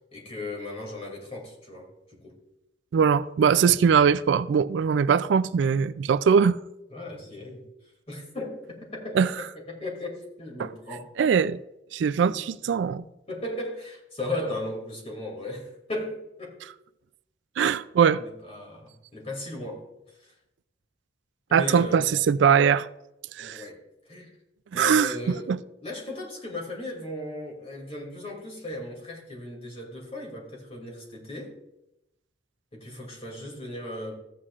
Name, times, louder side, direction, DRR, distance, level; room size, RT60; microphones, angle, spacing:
voice 1, 0.1-2.3 6.9-7.7 8.1-11.4 12.2-12.4 13.0-16.6 18.1-20.3 21.5-22.2 23.4-24.4 24.7-31.5 32.7-34.2, left 1 dB, 35° left, 2.5 m, -37 dB
voice 2, 2.9-6.6 9.1-9.3 10.6-10.7 11.2-11.6 11.9-13.0 17.6-18.2 21.5-22.9 23.4-23.6 24.7-25.1 25.5-25.6, right 7 dB, 70° right, 0.3 m, -21 dB
13.5 x 8.5 x 2.4 m
head